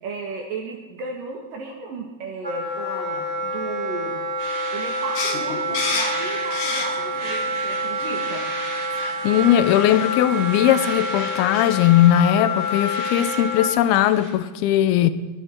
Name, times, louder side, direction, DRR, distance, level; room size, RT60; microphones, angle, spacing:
voice 1, 0.0-4.2 4.7-8.4, right 4 dB, 65° right, 3.1 m, -34 dB
Wind instrument woodwind instrument, 2.4-13.7, equal, 15° right, 1.6 m, -27 dB
sound 1, 4.4-14.3, right 1 dB, 80° right, 8.2 m, -37 dB
sound 2, 5.2-7.2 7.6-8.3 9.0-9.2 9.4-9.6 10.4-10.5 10.7-11.7, left 4 dB, 55° left, 2.6 m, -29 dB
voice 2, 9.2-15.1, left 12 dB, 80° left, 2.5 m, -18 dB
21.0 x 11.5 x 4.4 m
omnidirectional pair, 4.6 m